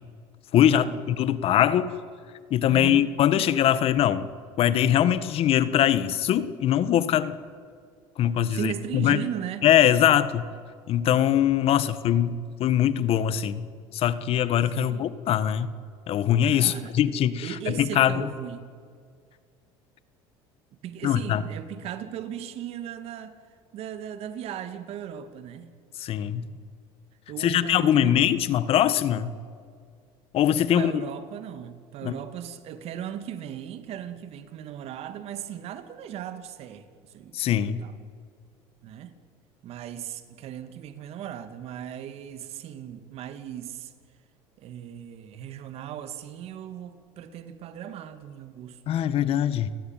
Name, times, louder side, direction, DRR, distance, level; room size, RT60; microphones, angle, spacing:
voice 1, 0.5-2.0 2.5-4.3 4.6-7.4 8.2-9.2 9.6-10.5 10.9-13.7 13.9-15.7 16.1-18.3 21.0-21.4 26.0-26.5 27.4-29.3 30.3-30.9 32.0-32.1 37.3-37.8 48.9-49.7, left 10 dB, 55° left, 1.6 m, -22 dB
voice 2, 2.6-3.1 8.5-9.7 14.8-15.2 16.5-16.9 17.4-18.7 20.8-23.4 23.7-25.7 27.3-28.3 30.7-37.4 37.8-37.9 38.8-39.1 39.6-43.9 44.6-48.8, right 9 dB, 60° right, 2.4 m, -37 dB
29.5 x 19.0 x 9.2 m
supercardioid pair, 95°, 12 cm